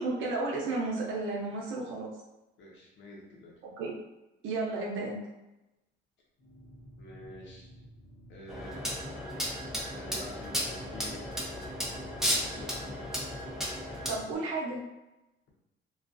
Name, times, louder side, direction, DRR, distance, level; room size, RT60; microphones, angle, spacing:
voice 1, 0.0-2.1 3.6-3.9 4.4-5.2 14.1-14.8, right 3 dB, 80° right, -3 dB, 0.6 m, -33 dB
voice 2, 2.6-3.6 7.0-7.7 8.3-9.2 9.9-11.6 12.2-13.1, left 1 dB, 70° left, -2 dB, 0.8 m, -48 dB
sound 1, 6.4-14.3, equal, 50° left, 1.0 m, -52 dB
sound 2, 8.5-14.2, equal, ahead, 0.7 m, -34 dB
2.4 x 2.2 x 2.5 m, 0.96 s
cardioid pair, 90°, 20 cm